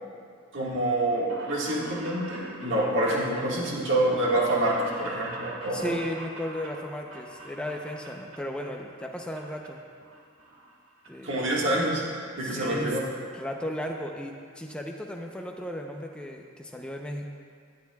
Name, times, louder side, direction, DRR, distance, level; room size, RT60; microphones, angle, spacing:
voice 1, 0.5-5.9 11.2-12.0 12.4-13.0, right 1 dB, 60° right, -5 dB, 1.8 m, -26 dB
sound 1, 1.1-8.7 9.0-9.7 10.0-11.1 11.3-11.4 12.4-12.5 12.6-12.7 13.0-13.1 13.4-13.7 14.1-14.2 14.3-14.4, right 2 dB, 80° right, 1.9 m, -42 dB
voice 2, 5.7-9.8 11.1-11.5 12.4-17.3, left 1 dB, 5° left, 1 dB, 0.7 m, -35 dB
17.0 x 10.5 x 2.4 m, 2.2 s
head